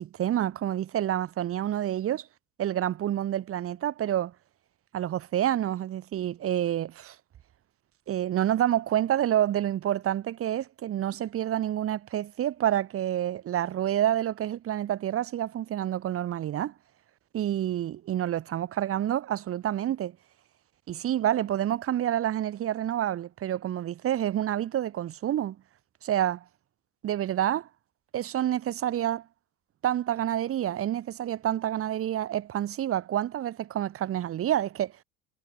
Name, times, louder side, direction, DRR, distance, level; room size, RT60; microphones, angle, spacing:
voice 1, 0.0-2.3 2.6-4.3 4.9-7.1 8.1-16.7 17.3-20.1 20.9-25.6 26.0-26.4 27.0-27.7 28.1-29.2 29.8-34.9, right 11 dB, 40° right, 3.2 m, -28 dB
figure-of-eight pair, 70°, 35 cm